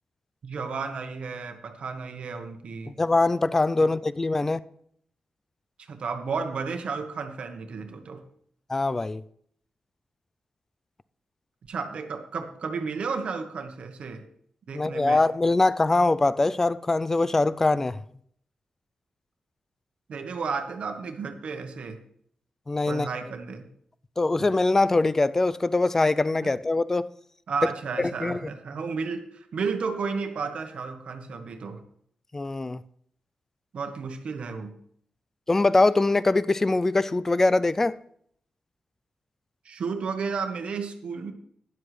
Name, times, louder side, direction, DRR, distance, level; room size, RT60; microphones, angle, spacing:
voice 1, 0.4-3.0 3.8-3.9 5.8-8.2 11.7-14.2 14.7-15.2 20.1-22.0 22.9-23.7 26.4-26.5 27.5-31.8 33.7-34.7 39.6-41.3, right 5 dB, 55° right, 1.1 m, -33 dB
voice 2, 3.0-4.6 8.7-9.2 14.7-18.0 22.7-23.1 24.2-27.0 28.0-28.4 32.3-32.8 35.5-38.0, left 2 dB, 20° left, 0.3 m, -23 dB
12.5 x 10.5 x 3.2 m
wide cardioid pair, 165°, 2 cm